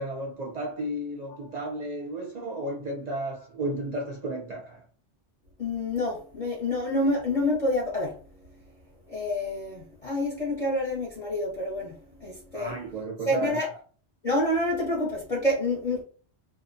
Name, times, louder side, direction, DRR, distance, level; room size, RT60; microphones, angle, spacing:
voice 1, 0.0-4.8 12.5-13.7, right 1 dB, 45° right, 0.6 m, -33 dB
voice 2, 5.6-8.1 9.1-11.9 12.2-12.7 13.3-13.7 14.2-16.0, left 1 dB, 40° left, 0.7 m, -27 dB
2.5 x 2.1 x 2.5 m
omnidirectional pair, 1.2 m